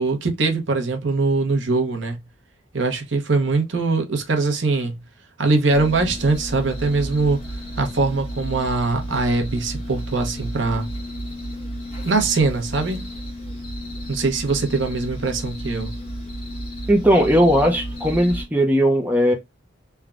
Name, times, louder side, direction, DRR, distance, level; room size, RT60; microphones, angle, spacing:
voice 1, 0.0-2.2 2.7-5.0 5.4-7.4 7.8-10.9 12.0-13.1 14.1-15.9, right 3 dB, 75° right, 0.8 m, -22 dB
sound 1, 5.7-18.4, equal, 30° left, 1.2 m, -32 dB
voice 2, 16.9-19.3, equal, 10° right, 0.5 m, -17 dB
3.3 x 2.2 x 2.3 m
head